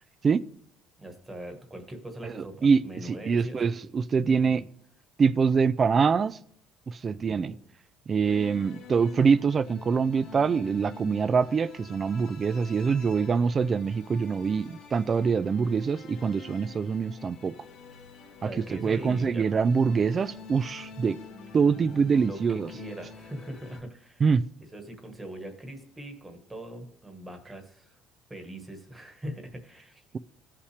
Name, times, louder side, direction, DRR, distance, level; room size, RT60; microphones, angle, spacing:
voice 1, 1.0-3.6 4.3-4.5 7.1-7.5 18.4-19.4 22.2-24.2 24.7-28.0 28.3-30.0, right 1 dB, 10° right, 1.3 m, -41 dB
voice 2, 2.2-4.6 5.2-6.4 6.9-7.5 8.1-17.5 18.4-21.2 21.5-22.7 24.2-24.5, right 5 dB, 25° right, 0.3 m, -25 dB
sound 1, 8.2-23.8, left 4 dB, 55° left, 1.7 m, -47 dB
16.0 x 5.6 x 3.3 m
cardioid pair, 155°, 0 cm